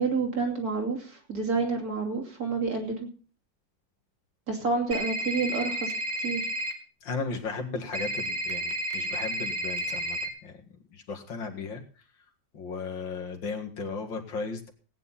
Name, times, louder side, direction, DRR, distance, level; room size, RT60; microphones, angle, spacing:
voice 1, 0.0-3.1 4.5-5.9 6.2-6.5, right 4 dB, 50° right, 1 dB, 3.4 m, -29 dB
sound 1, 4.9-6.7 7.9-10.3, right 1 dB, 35° right, 2.6 m, -31 dB
voice 2, 7.0-10.6 10.9-11.8 12.5-14.7, left 4 dB, 80° left, 4 dB, 2.6 m, -35 dB
18.0 x 9.4 x 4.1 m, 0.38 s
omnidirectional pair, 2.0 m